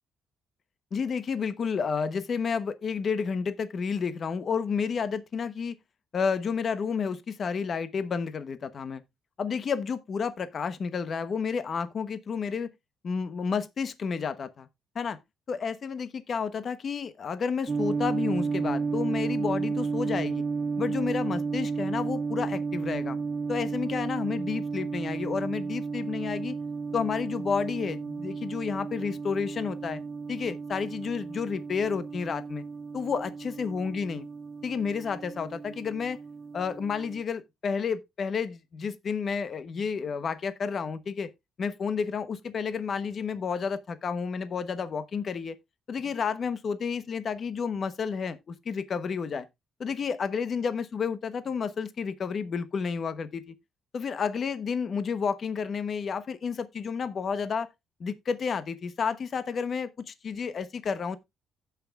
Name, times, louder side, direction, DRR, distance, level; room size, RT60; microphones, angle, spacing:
voice 1, 0.9-5.7 6.1-9.0 9.4-12.7 13.0-14.7 14.9-15.2 15.5-20.4 20.8-23.2 23.5-26.6 26.9-30.0 30.3-32.6 32.9-34.3 34.6-36.2 36.5-41.3 41.6-45.5 45.9-49.5 49.8-53.5 53.9-57.7 58.0-61.2, left 6 dB, 50° left, 0.9 m, -31 dB
sound 1, 17.7-37.2, right 5 dB, 35° right, 0.4 m, -33 dB
16.0 x 5.9 x 2.4 m
cardioid pair, 90°, 0 cm